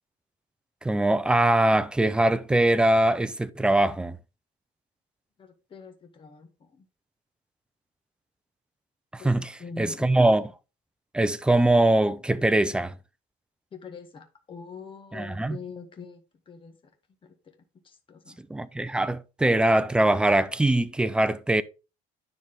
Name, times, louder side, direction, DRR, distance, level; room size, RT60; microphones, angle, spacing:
voice 1, 0.8-4.2 9.1-9.4 9.8-10.4 11.1-12.9 15.1-15.6 18.5-21.6, right 1 dB, 5° right, 0.4 m, -22 dB
voice 2, 5.4-6.9 9.2-10.1 13.7-16.9 17.2-17.5 17.8-18.4, left 5 dB, 25° left, 1.6 m, -44 dB
9.5 x 6.1 x 3.6 m
cardioid pair, 145°, 20 cm